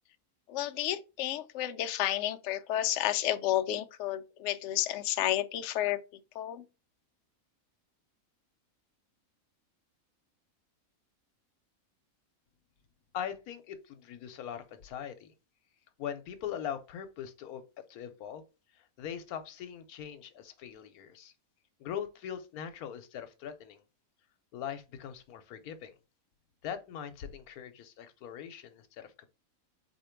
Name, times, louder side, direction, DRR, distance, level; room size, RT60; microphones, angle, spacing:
voice 1, 0.5-6.0 6.3-6.6, left 13 dB, 65° left, 0.8 m, -31 dB
voice 2, 13.1-15.3 16.0-17.6 17.9-18.4 19.0-21.3 21.8-23.8 24.5-25.9 26.6-29.3, left 9 dB, 85° left, 1.2 m, -41 dB
4.3 x 2.7 x 4.4 m
omnidirectional pair, 1.5 m